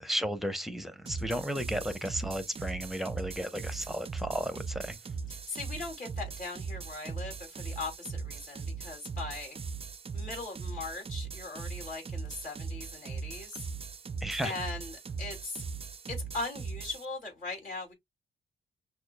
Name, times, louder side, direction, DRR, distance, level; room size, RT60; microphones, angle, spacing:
voice 1, 0.0-5.0 14.2-14.5, equal, ahead, 0.9 m, -34 dB
sound 1, 1.1-17.1, right 5 dB, 30° right, 0.4 m, -39 dB
voice 2, 5.3-9.6 10.1-13.6 14.4-15.6 16.1-17.9, left 3 dB, 40° left, 2.8 m, -40 dB
6.2 x 2.5 x 2.3 m
cardioid pair, 70°, 21 cm